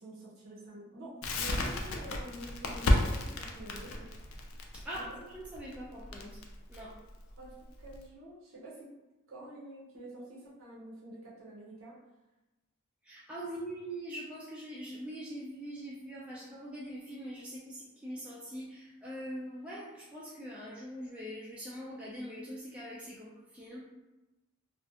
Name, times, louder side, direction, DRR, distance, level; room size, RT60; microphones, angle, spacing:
voice 1, 0.0-4.1 4.9-5.2 7.4-8.9 9.3-11.9, right 1 dB, 70° right, -6 dB, 0.7 m, -48 dB
Crackle, 1.2-8.0, left 1 dB, 75° left, 0.4 m, -32 dB
voice 2, 4.7-6.4 6.7-7.0 13.0-23.8, equal, 5° right, -8 dB, 0.3 m, -43 dB
2.5 x 2.1 x 2.7 m, 1.0 s
head